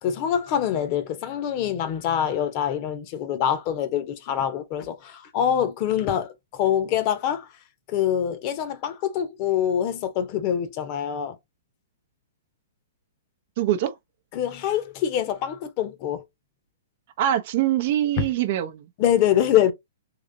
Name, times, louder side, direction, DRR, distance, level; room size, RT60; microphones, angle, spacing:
voice 1, 0.0-7.5 7.9-11.4 14.3-16.2 18.2-18.3 19.0-19.7, left 9 dB, 40° left, 0.9 m, -25 dB
voice 2, 13.6-14.0 17.2-18.9, right 12 dB, 50° right, 0.6 m, -23 dB
3.8 x 2.8 x 2.7 m
figure-of-eight pair, 115°, 0 cm